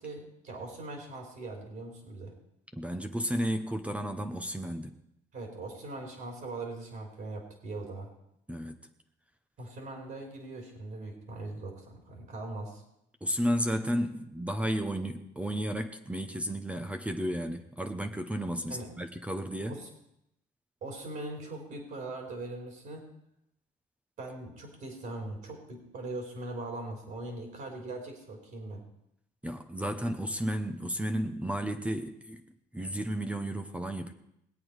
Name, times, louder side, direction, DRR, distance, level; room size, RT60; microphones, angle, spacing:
voice 1, 0.0-2.3 5.3-8.1 9.6-12.8 18.7-18.9 19.6-19.9 20.8-23.1 24.2-28.8, right 2 dB, 60° right, 0 dB, 3.3 m, -41 dB
voice 2, 2.7-4.9 8.5-8.8 13.2-19.7 29.4-32.4 32.7-34.1, equal, 5° right, 6 dB, 0.9 m, -33 dB
20.0 x 8.6 x 4.8 m, 0.80 s
cardioid pair, 110°, 17 cm